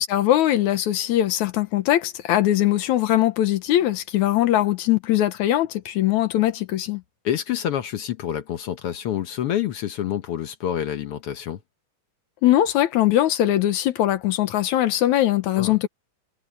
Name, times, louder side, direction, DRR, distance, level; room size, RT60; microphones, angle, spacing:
voice 1, 0.0-7.0 12.4-15.9, left 13 dB, 80° left, 2.4 m, -21 dB
voice 2, 7.2-11.6 15.6-15.9, left 10 dB, 65° left, 1.5 m, -27 dB
omnidirectional pair, 3.3 m